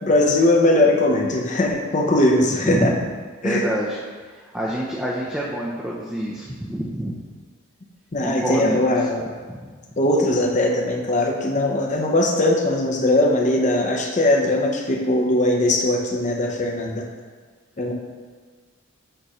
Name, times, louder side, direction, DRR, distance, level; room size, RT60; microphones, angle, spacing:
voice 1, 0.0-2.9 3.4-3.7 8.1-9.3 10.0-17.0 17.8-17.9, left 1 dB, 35° left, 0 dB, 0.6 m, -20 dB
voice 2, 2.6-3.0 3.4-4.0 4.3-7.1 8.2-8.9 9.5-9.7, equal, 5° right, -5 dB, 0.5 m, -26 dB
6.7 x 3.0 x 4.9 m, 1.5 s
head